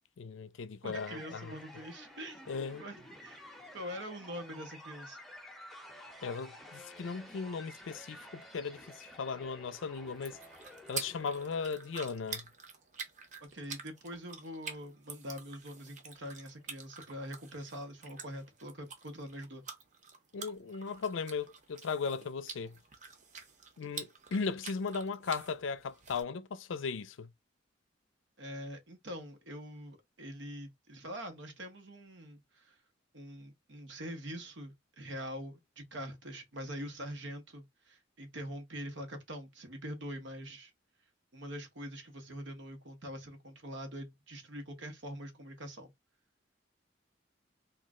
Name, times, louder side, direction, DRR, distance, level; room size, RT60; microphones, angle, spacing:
voice 1, 0.2-1.5 2.5-2.8 6.2-10.4 10.9-12.4 20.3-22.7 23.8-27.3, left 5 dB, 90° left, 0.4 m, -37 dB
voice 2, 0.8-2.4 2.8-3.4 3.7-5.2 13.5-19.6 28.4-32.8 33.1-40.7 41.3-45.9, equal, 70° right, 1.0 m, -44 dB
sound 1, 0.9-12.1, left 1 dB, ahead, 0.7 m, -52 dB
sound 2, 10.1-26.2, right 5 dB, 40° right, 0.8 m, -48 dB
3.0 x 2.4 x 3.6 m
head